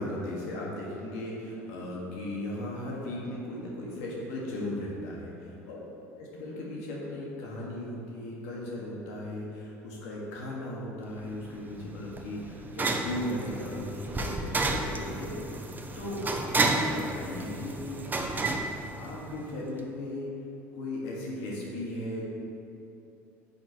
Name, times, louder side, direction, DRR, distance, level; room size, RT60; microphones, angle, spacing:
voice 1, 0.0-5.8 6.4-15.6 15.9-18.0 19.0-20.3 20.7-22.2, left 1 dB, 80° left, -4 dB, 1.5 m, -37 dB
sound 1, 11.2-19.6, right 2 dB, 25° right, 0.6 m, -32 dB
5.8 x 4.5 x 4.4 m, 2.8 s
hypercardioid pair, 70°, 8 cm